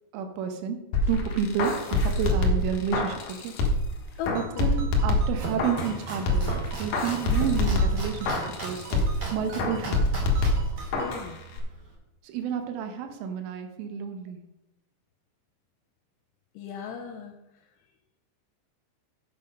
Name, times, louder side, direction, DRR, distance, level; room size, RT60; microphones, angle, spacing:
voice 1, 0.1-0.8 1.1-3.5 4.3-6.5 6.8-10.3 12.2-14.4, right 7 dB, 80° right, 6 dB, 3.4 m, -30 dB
sound 1, 0.9-3.9 4.3-6.0 6.3-9.3 9.6-11.3 11.6-11.7, left 2 dB, 65° left, 2.2 m, -26 dB
voice 2, 4.2-4.7 11.0-11.4 16.6-17.3, left 7 dB, 85° left, 3 dB, 2.5 m, -36 dB
Ringtone, 4.4-11.2, right 6 dB, 60° right, 2.6 m, -47 dB
Domestic sounds home sounds, 5.0-11.9, right 3 dB, 45° right, 1.3 m, -38 dB
8.0 x 7.2 x 5.3 m, 0.88 s
omnidirectional pair, 5.7 m